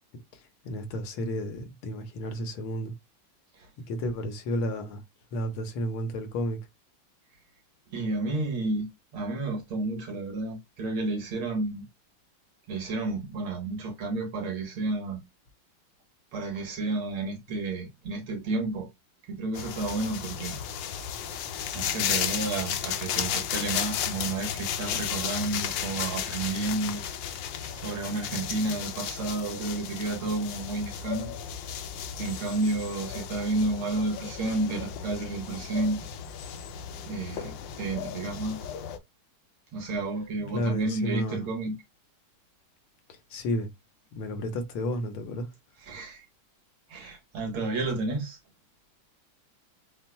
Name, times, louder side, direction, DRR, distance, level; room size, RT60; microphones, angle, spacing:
voice 1, 0.3-2.9 3.9-5.0 5.3-6.6 40.5-41.5 43.1-43.7 44.1-45.5, equal, 85° left, 1.8 m, -32 dB
voice 2, 7.9-11.9 12.7-15.2 16.3-18.9 19.3-20.6 21.7-27.0 27.7-31.3 32.2-36.1 37.1-38.7 39.7-41.8 45.8-46.3 46.9-48.4, right 2 dB, 80° right, 2.1 m, -31 dB
sound 1, 19.5-39.0, left 9 dB, 70° left, 1.2 m, -34 dB
7.3 x 2.5 x 2.2 m
omnidirectional pair, 2.3 m